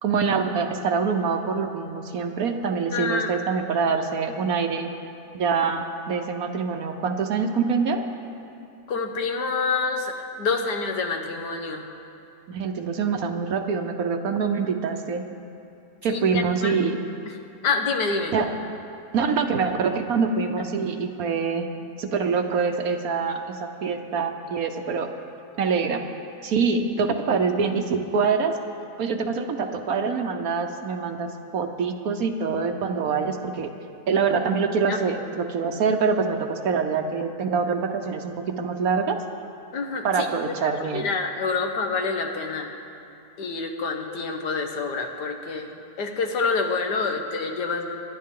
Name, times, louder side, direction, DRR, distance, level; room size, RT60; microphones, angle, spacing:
voice 1, 0.0-4.9 5.3-8.0 12.5-15.2 16.0-17.0 18.3-18.5 19.1-21.7 22.0-25.1 25.6-26.0 26.4-28.5 29.0-31.3 31.5-33.7 34.1-39.2 40.0-41.1, right 5 dB, 65° right, 6 dB, 1.2 m, -25 dB
voice 2, 2.9-3.3 8.9-11.9 16.1-16.7 17.3-17.4 17.6-18.3 34.9-35.0 39.7-40.3 40.9-42.7 43.4-45.7 46.0-48.0, left 4 dB, 80° left, 4 dB, 1.7 m, -27 dB
24.0 x 10.0 x 3.7 m, 2.7 s
omnidirectional pair, 1.8 m